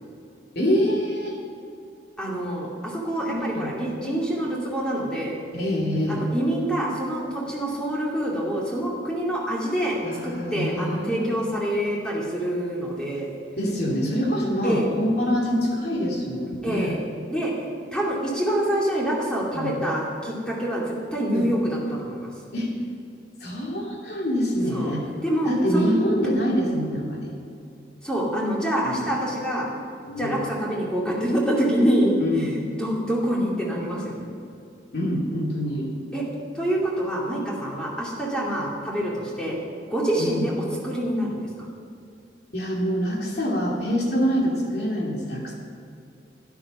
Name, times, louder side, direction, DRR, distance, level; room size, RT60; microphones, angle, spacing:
voice 1, 0.5-1.4 3.3-3.7 5.5-6.2 10.0-11.3 13.6-17.0 19.5-19.8 21.3-21.5 22.5-22.7 23.4-25.0 25.5-27.3 28.8-29.0 30.1-30.5 32.2-32.6 34.9-35.9 40.2-40.4 42.5-45.5, equal, 60° left, -3 dB, 2.9 m, -25 dB
voice 2, 2.2-5.3 6.1-10.0 10.2-13.3 14.6-14.9 16.6-17.0 17.3-17.5 17.9-22.3 24.7-24.9 25.2-25.9 28.0-29.7 30.2-34.3 36.1-36.2 36.5-39.6 39.9-40.5 40.8-41.5, right 1 dB, 5° left, -5 dB, 2.5 m, -26 dB
12.5 x 10.5 x 5.6 m, 2.5 s
head